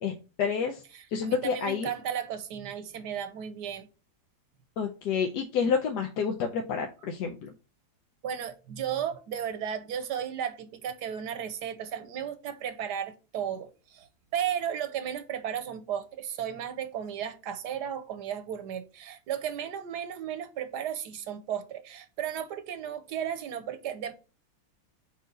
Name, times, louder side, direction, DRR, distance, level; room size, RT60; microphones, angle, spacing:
voice 1, 0.0-0.8 1.1-1.9 4.8-7.5, left 6 dB, 80° left, 1.3 m, -29 dB
voice 2, 0.9-3.9 8.2-24.1, right 9 dB, 80° right, 1.3 m, -34 dB
4.6 x 4.5 x 5.4 m
omnidirectional pair, 1.8 m